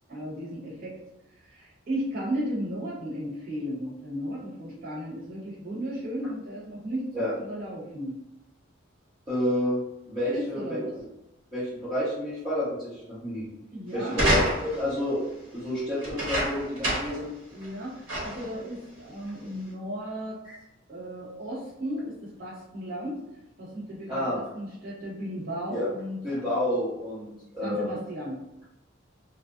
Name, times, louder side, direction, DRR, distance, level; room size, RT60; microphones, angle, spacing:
voice 1, 0.1-1.0 1.4-8.1 10.3-10.9 13.7-14.3 17.5-20.4 20.9-23.2 23.6-26.2 27.6-28.4, equal, 45° right, -8 dB, 1.1 m, -35 dB
voice 2, 9.3-9.8 10.1-10.8 11.5-13.4 13.9-15.2 15.5-17.3 20.4-20.5 24.1-24.4 25.7-25.9 26.2-27.9, left 1 dB, 25° right, -14 dB, 0.9 m, -29 dB
sound 1, 14.1-14.9 16.0-17.2 17.6-17.7 18.1-18.5 19.3-19.4, equal, 80° right, 1.0 m, -27 dB
2.4 x 2.0 x 2.5 m, 0.92 s
head